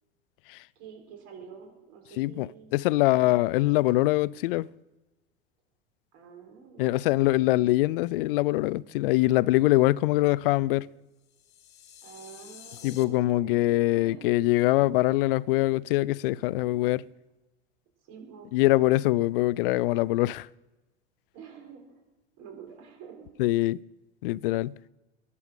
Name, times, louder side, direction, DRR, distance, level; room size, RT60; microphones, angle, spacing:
voice 1, 0.7-3.4 6.1-7.3 12.0-14.3 18.0-18.5 21.3-22.0 22.4-23.3, right 7 dB, 50° right, 4.6 m, -48 dB
voice 2, 2.2-4.7 6.8-10.9 12.8-17.1 18.5-20.5 23.4-23.8 24.2-24.7, left 18 dB, 55° left, 0.5 m, -23 dB
sound 1, 11.2-13.0, left 10 dB, 30° left, 1.6 m, -49 dB
21.0 x 7.1 x 6.3 m
figure-of-eight pair, 80°, 33 cm